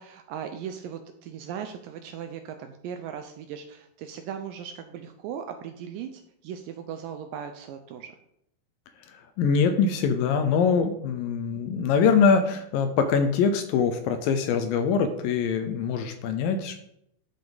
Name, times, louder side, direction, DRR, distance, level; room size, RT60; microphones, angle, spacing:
voice 1, 0.0-8.1, right 8 dB, 80° right, 6 dB, 2.1 m, -38 dB
voice 2, 9.4-16.7, left 6 dB, 80° left, 7 dB, 2.2 m, -23 dB
11.5 x 5.2 x 3.9 m, 0.75 s
omnidirectional pair, 4.3 m